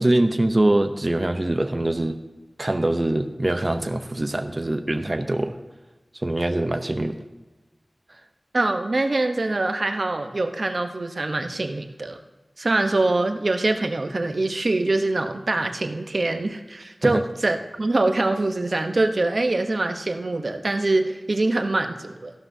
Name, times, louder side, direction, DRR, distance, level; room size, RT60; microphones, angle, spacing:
voice 1, 0.0-2.2 2.6-5.6 6.2-7.2 17.0-17.2, right 1 dB, 35° right, 7 dB, 0.7 m, -23 dB
voice 2, 8.5-12.2 12.6-22.3, right 2 dB, 60° right, 6 dB, 0.9 m, -24 dB
14.5 x 12.0 x 2.7 m, 1.2 s
wide cardioid pair, 55°, 0 cm